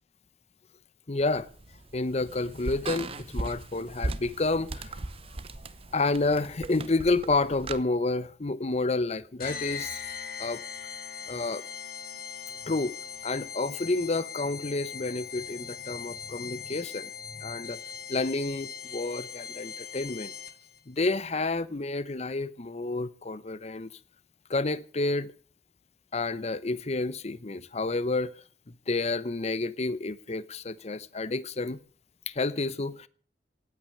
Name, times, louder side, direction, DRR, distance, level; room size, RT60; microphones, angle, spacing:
voice 1, 1.1-1.5 1.9-5.0 5.9-10.0 10.4-10.6 11.3-11.6 12.7-13.0 13.2-17.1 17.4-17.8 18.1-20.3 20.9-23.9 24.5-25.3 26.1-28.3 28.7-31.8 32.3-33.1, left 3 dB, 40° left, 0.7 m, -30 dB
sound 1, 1.2-7.8, right 2 dB, 35° right, 0.7 m, -38 dB
sound 2, 9.4-20.8, left 7 dB, 55° left, 1.8 m, -40 dB
17.5 x 9.1 x 6.5 m
head